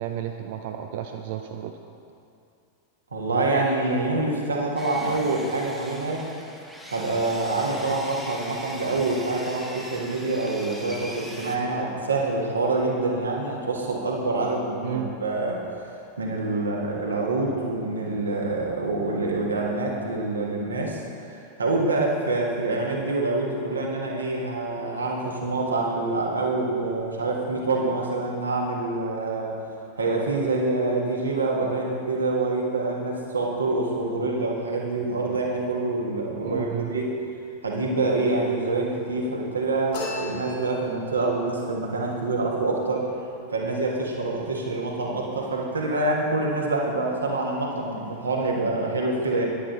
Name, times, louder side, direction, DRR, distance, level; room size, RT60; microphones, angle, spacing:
voice 1, 0.0-1.7 14.8-15.1 36.4-36.9, right 10 dB, 50° right, 4 dB, 0.5 m, -32 dB
voice 2, 3.1-6.3 6.9-15.9 16.2-21.3 21.6-29.6 30.0-37.2 37.6-43.1 43.5-49.5, right 2 dB, 75° right, -2 dB, 1.6 m, -26 dB
Sawing, 4.8-11.6, equal, ahead, 1.0 m, -41 dB
sound 1, 39.9-41.2, left 3 dB, 55° left, 2.5 m, -36 dB
10.0 x 9.6 x 3.9 m, 2.5 s
figure-of-eight pair, 90°, 0 cm